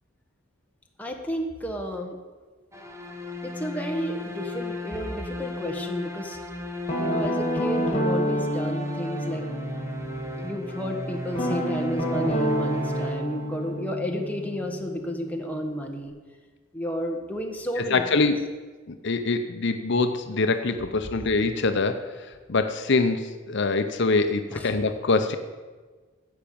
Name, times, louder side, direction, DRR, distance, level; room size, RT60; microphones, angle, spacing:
voice 1, 1.0-2.2 3.4-6.4 6.8-9.5 10.4-16.1 16.7-18.3 24.5-24.7, equal, 10° left, 1 dB, 1.5 m, -32 dB
sound 1, 2.7-13.8, left 1 dB, 15° right, 1.3 m, -35 dB
Guitar, 6.9-10.7 11.3-16.1, equal, 30° left, 2.5 m, -29 dB
voice 2, 17.8-18.4 18.9-25.4, left 3 dB, 60° left, 7 dB, 0.7 m, -24 dB
15.5 x 5.9 x 8.6 m, 1.4 s
head